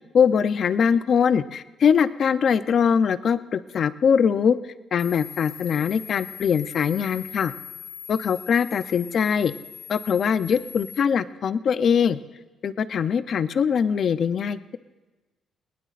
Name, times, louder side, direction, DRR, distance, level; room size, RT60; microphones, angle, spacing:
voice 1, 0.1-4.6 4.9-7.5 8.1-9.5 9.9-12.2 12.6-14.8, left 7 dB, 55° left, 13 dB, 0.6 m, -22 dB
sound 1, 5.0-11.0, left 9 dB, 85° left, 1.2 m, -41 dB
20.0 x 19.0 x 2.5 m, 1.2 s
cardioid pair, 115°, 0 cm